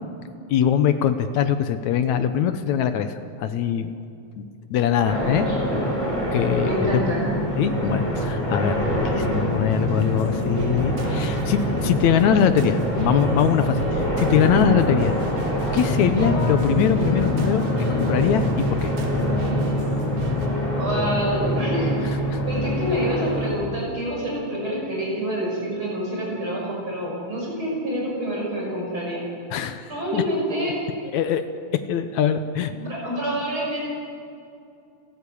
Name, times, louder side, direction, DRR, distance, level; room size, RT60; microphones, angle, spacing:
voice 1, 0.5-3.9 4.4-4.5 4.7-5.5 6.3-7.0 7.6-15.1 15.7-17.7 18.0-18.9 22.3-22.4 29.5-30.2 31.1-31.4 31.9-32.7, left 8 dB, 70° left, 10 dB, 1.9 m, -22 dB
sound 1, 5.0-23.5, equal, 10° left, 7.4 m, -25 dB
voice 2, 5.0-5.8 6.6-7.3 20.8-22.1 22.4-29.2 29.9-30.8 32.7-33.8, equal, 35° right, -3 dB, 6.7 m, -27 dB
sound 2, 10.0-20.5, right 3 dB, 85° right, 3.6 m, -36 dB
sound 3, 16.1-27.2 27.5-28.2, left 2 dB, 50° left, 9.0 m, -38 dB
29.5 x 13.0 x 8.5 m, 2.5 s
omnidirectional pair, 4.0 m